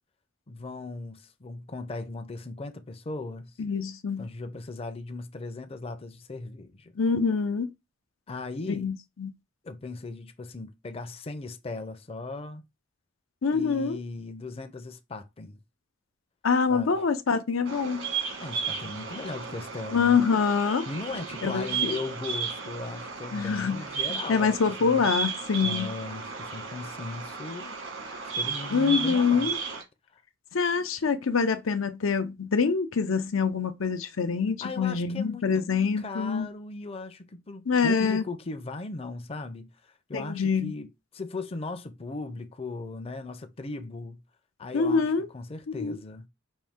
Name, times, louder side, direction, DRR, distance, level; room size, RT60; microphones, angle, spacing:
voice 1, 0.5-3.5 4.2-6.9 8.3-8.9 9.6-12.6 13.5-15.6 16.7-17.0 18.4-20.2 20.9-25.1 25.6-27.8 28.2-29.5 34.6-35.5 36.0-44.2 44.6-46.3, left 3 dB, 30° left, 0.5 m, -38 dB
voice 2, 3.6-4.3 7.0-7.7 8.7-9.3 13.4-14.0 16.4-18.0 19.9-20.9 21.4-21.9 23.3-23.8 24.1-25.9 28.7-29.6 30.5-36.5 37.7-38.2 40.1-40.7 44.7-45.3 45.7-46.0, left 5 dB, 90° left, 0.6 m, -25 dB
Bird vocalization bird call bird song, 17.7-29.8, right 5 dB, 75° right, 1.5 m, -34 dB
5.3 x 2.6 x 3.5 m
head